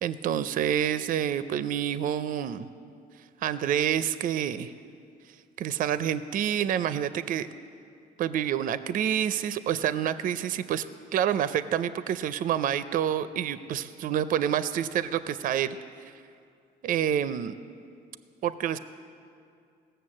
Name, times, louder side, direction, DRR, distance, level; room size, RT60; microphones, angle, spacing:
voice 1, 0.0-2.7 3.4-4.7 5.6-7.5 8.2-10.8 11.1-15.8 16.8-17.5 18.4-18.8, right 9 dB, 55° right, 13 dB, 0.5 m, -28 dB
17.0 x 6.7 x 7.6 m, 2.3 s
cardioid pair, 110°, 17 cm